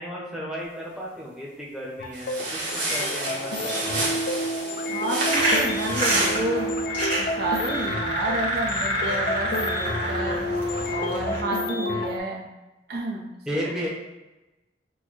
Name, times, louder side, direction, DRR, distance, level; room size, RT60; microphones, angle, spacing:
voice 1, 0.0-4.2 13.5-13.9, equal, 5° right, -5 dB, 0.8 m, -34 dB
sound 1, 2.0-12.2, left 1 dB, 60° left, 0.4 m, -30 dB
sound 2, 2.1-6.4, right 2 dB, 85° right, 1.2 m, -30 dB
voice 2, 4.9-6.7 7.2-10.5 10.9-12.5 12.9-13.3 13.6-13.9, right 1 dB, 65° right, -1 dB, 0.8 m, -30 dB
sound 3, 5.3-11.4, right 1 dB, 30° right, 1.5 m, -27 dB
6.1 x 2.2 x 3.0 m, 1.0 s
head